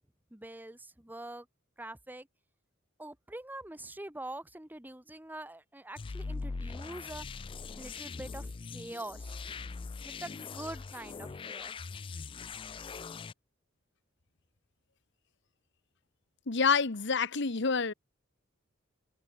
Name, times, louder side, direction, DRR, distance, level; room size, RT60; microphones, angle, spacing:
voice 1, 0.3-1.5 1.8-2.3 3.0-7.3 7.8-11.8, right 1 dB, 10° right, 1.4 m, -45 dB
sound 1, 6.0-13.3, left 4 dB, 25° left, 0.3 m, -41 dB
voice 2, 16.5-17.9, left 5 dB, 60° left, 1.3 m, -27 dB
head